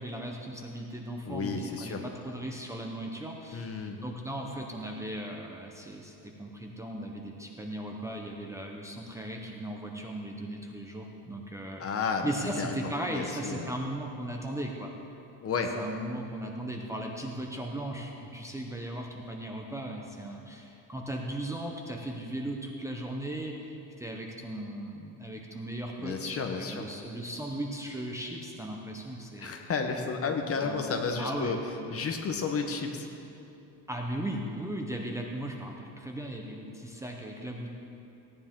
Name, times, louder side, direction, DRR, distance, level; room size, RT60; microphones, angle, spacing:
voice 1, 0.0-11.9 12.2-14.9 15.8-29.7 30.6-31.6 33.9-37.7, right 1 dB, 5° right, 0 dB, 0.8 m, -37 dB
voice 2, 1.3-2.0 3.5-4.0 11.8-12.3 12.6-12.7 13.1-13.7 15.4-15.7 26.0-26.8 29.4-31.6 31.9-33.1, left 5 dB, 35° left, 4 dB, 1.0 m, -32 dB
17.0 x 9.7 x 3.7 m, 2.8 s
cardioid pair, 140°, 43 cm